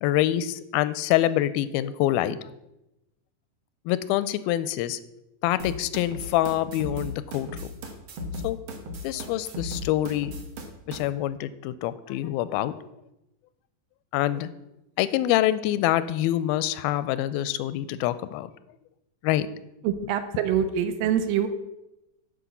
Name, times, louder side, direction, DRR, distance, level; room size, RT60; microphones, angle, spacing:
voice 1, 0.0-2.4 3.9-5.0 5.4-7.7 8.4-8.6 9.0-10.3 10.9-12.9 14.1-14.5 15.0-18.5 19.2-19.5, left 13 dB, 85° left, 15 dB, 2.4 m, -25 dB
sound 1, 5.6-11.0, left 1 dB, 60° right, 1.3 m, -36 dB
voice 2, 19.8-21.5, right 9 dB, 75° right, 10 dB, 2.4 m, -25 dB
10.0 x 5.4 x 7.2 m, 0.90 s
omnidirectional pair, 4.2 m